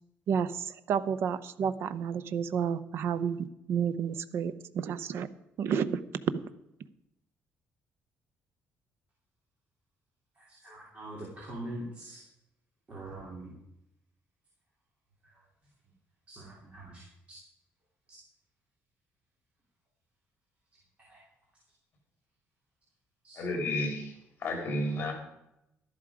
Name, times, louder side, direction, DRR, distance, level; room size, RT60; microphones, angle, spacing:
voice 1, 0.3-5.3 5.6-6.0 6.3-6.4, right 7 dB, 55° right, 14 dB, 0.7 m, -31 dB
voice 2, 10.3-12.2 12.9-13.5 15.2-15.4 16.3-17.4 18.1-18.2 21.0-21.2 23.2-23.6, right 1 dB, 25° right, -4 dB, 2.9 m, -44 dB
voice 3, 23.4-24.1 24.4-25.1, left 1 dB, 40° left, 3 dB, 3.5 m, -31 dB
12.0 x 11.5 x 4.9 m, 0.83 s
cardioid pair, 175°, 5 cm